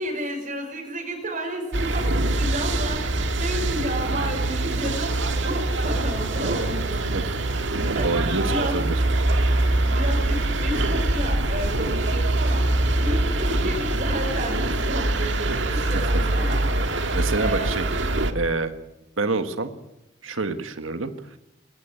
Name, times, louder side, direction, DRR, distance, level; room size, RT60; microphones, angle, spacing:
voice 1, 0.0-8.8 9.8-17.8, right 1 dB, 45° right, 2 dB, 5.6 m, -32 dB
sound 1, 1.7-18.3, right 2 dB, 65° right, 1.9 m, -24 dB
voice 2, 8.0-8.9 15.9-16.1 17.1-17.8 18.3-18.7 19.2-19.7 20.2-21.1, right 3 dB, 90° right, 8 dB, 1.6 m, -27 dB
21.0 x 18.0 x 8.6 m, 0.90 s
head